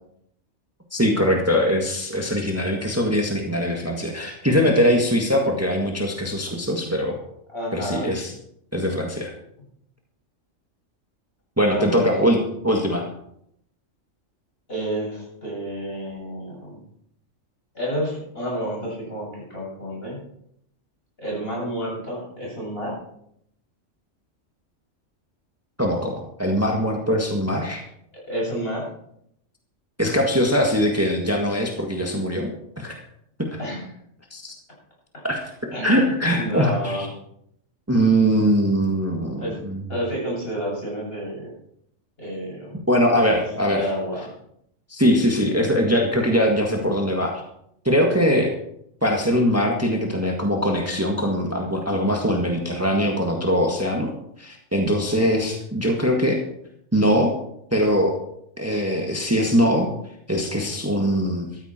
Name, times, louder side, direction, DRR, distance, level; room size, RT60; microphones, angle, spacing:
voice 1, 0.9-7.2 7.7-8.3 8.7-9.3 11.6-12.4 12.6-13.1 25.8-27.8 30.0-32.5 32.8-33.0 33.4-33.6 34.3-34.5 35.2-35.4 35.8-37.1 37.9-39.8 42.9-43.9 44.9-47.4 47.8-48.5 49.0-54.1 54.4-56.4 56.9-57.3 57.7-58.1 58.6-59.9 60.3-61.5, equal, 10° right, 1 dB, 1.8 m, -21 dB
voice 2, 7.5-8.1 11.7-12.1 14.7-16.8 17.7-20.2 21.2-23.0 28.1-28.9 33.6-33.9 35.7-37.1 39.4-39.6 39.9-41.5 42.2-42.8 43.1-43.4 43.7-44.3, equal, 50° left, -4 dB, 8.2 m, -30 dB
14.0 x 13.5 x 4.5 m, 0.72 s
omnidirectional pair, 1.3 m